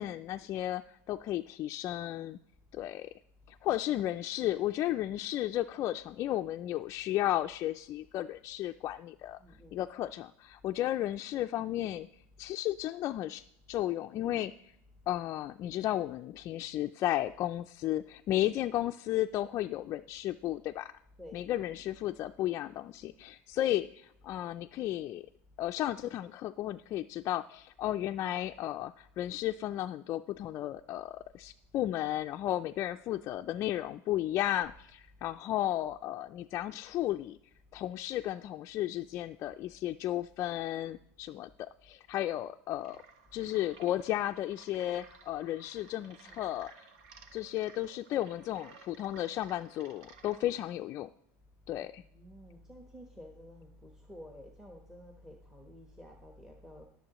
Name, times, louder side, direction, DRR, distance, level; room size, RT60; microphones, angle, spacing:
voice 1, 0.0-2.4 2.7-3.1 3.5-9.4 9.7-12.1 12.4-13.4 13.7-14.7 15.1-20.9 21.3-25.2 25.6-37.4 37.7-43.0 43.3-46.7 47.3-51.1 51.7-52.0, left 13 dB, 45° left, 5 dB, 0.3 m, -34 dB
voice 2, 9.4-9.8 19.4-19.5 21.2-21.4 46.2-46.4 52.1-56.9, equal, 5° right, 2 dB, 1.1 m, -51 dB
sound 1, 42.8-50.7, right 5 dB, 85° right, 1.1 m, -56 dB
20.0 x 6.9 x 3.0 m, 0.76 s
supercardioid pair, 130°, 7 cm